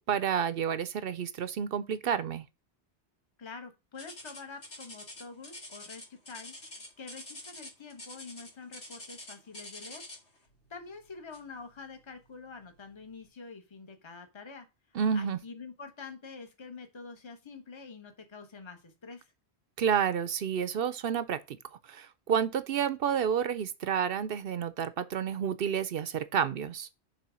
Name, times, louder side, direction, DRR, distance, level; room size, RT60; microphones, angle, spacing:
voice 1, 0.1-2.4 14.9-15.4 19.8-21.6 21.9-26.9, right 8 dB, 65° right, 0.8 m, -30 dB
voice 2, 3.4-10.0 10.7-19.3, left 4 dB, 25° left, 1.1 m, -47 dB
sound 1, 4.0-10.4 11.3-11.6 12.1-12.2 12.9-13.0, left 1 dB, 80° left, 3.0 m, -46 dB
6.8 x 3.6 x 6.1 m
omnidirectional pair, 1.1 m